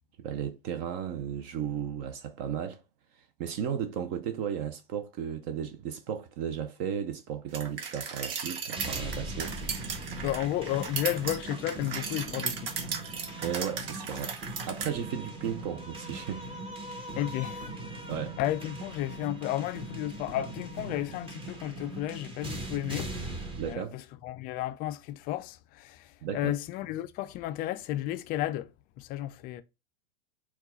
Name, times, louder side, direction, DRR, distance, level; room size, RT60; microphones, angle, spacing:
voice 1, 0.2-2.8 3.4-9.6 13.4-14.4 14.7-16.5 18.1-18.3 23.6-24.0 26.2-26.5, right 8 dB, 45° right, 0.6 m, -34 dB
sound 1, 7.5-14.9, right 6 dB, 70° right, 1.0 m, -36 dB
sound 2, 8.8-23.7, right 2 dB, 20° right, 1.0 m, -40 dB
voice 2, 10.2-12.8 17.2-17.7 18.4-26.1 26.3-28.7 29.0-29.6, left 13 dB, 30° left, 0.4 m, -33 dB
4.4 x 2.3 x 4.2 m
hypercardioid pair, 115°, 29 cm